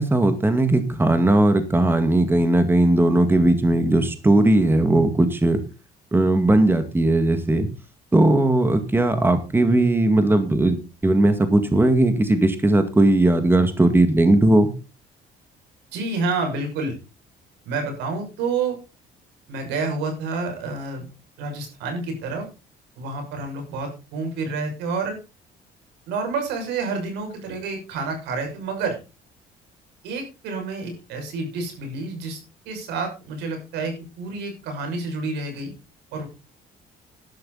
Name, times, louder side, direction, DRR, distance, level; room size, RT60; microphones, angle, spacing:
voice 1, 0.0-5.6 6.1-7.7 8.1-14.7, right 2 dB, 15° right, 8 dB, 2.1 m, -18 dB
voice 2, 15.9-16.9 17.6-18.8 19.5-21.1 21.4-22.5 23.0-25.2 26.1-29.0 30.0-32.4 32.6-35.7 36.1-36.3, right 4 dB, 90° right, 4 dB, 6.3 m, -29 dB
12.5 x 11.5 x 4.1 m, 0.30 s
cardioid pair, 110°, 17 cm